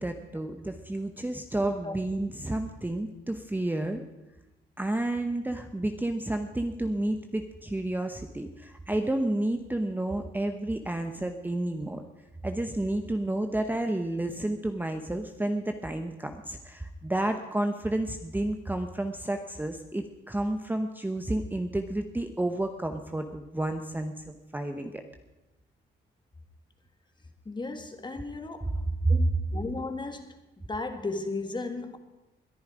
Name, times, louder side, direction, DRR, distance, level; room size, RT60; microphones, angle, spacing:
voice 1, 0.0-4.0 4.8-12.0 12.4-25.0 29.0-29.2, right 1 dB, 10° right, 6 dB, 0.9 m, -30 dB
voice 2, 27.5-28.8 29.1-32.0, left 3 dB, 25° left, 7 dB, 1.9 m, -35 dB
21.0 x 10.5 x 5.0 m, 1.0 s
cardioid pair, 90°, 20 cm